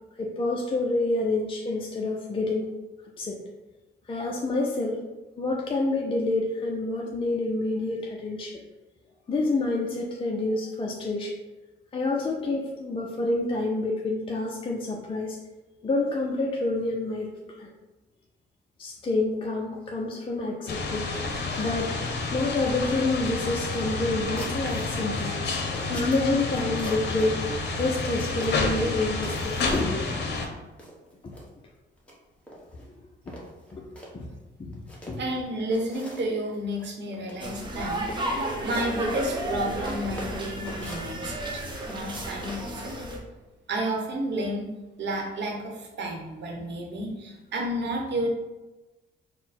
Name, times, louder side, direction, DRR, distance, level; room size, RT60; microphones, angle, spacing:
voice 1, 0.2-2.7 3.2-3.4 4.1-5.0 5.4-8.6 9.3-11.4 11.9-15.4 15.8-17.3 17.6-17.7 18.8-21.2 21.6-22.0 22.3-25.4 25.9-27.5 27.8-30.1 31.2-31.3 33.3-33.4 33.7-33.9 34.1-34.3 34.6-34.7 35.1-35.2, left 2 dB, 25° left, -1 dB, 0.5 m, -28 dB
sound 1, 20.7-30.4, left 3 dB, 60° left, 0.8 m, -30 dB
sound 2, 24.4-25.0 25.4-27.4 28.0-28.7 29.1-30.0 30.3-30.4 30.8-31.5 32.0-32.1 32.5-32.8 33.3-34.1 34.7-35.3 35.7-36.3 36.7-36.8 37.1-37.6 37.9-38.4 38.7-39.9 40.2-41.5 41.8-42.6, equal, 5° left, 1.1 m, -42 dB
voice 2, 35.2-41.6 41.9-42.9 43.7-44.7 45.0-48.3, right 1 dB, 65° right, 0 dB, 1.0 m, -31 dB
sound 3, 37.4-43.2, right 1 dB, 25° right, 0.9 m, -32 dB
4.2 x 2.2 x 4.2 m, 1.1 s
cardioid pair, 90°, 20 cm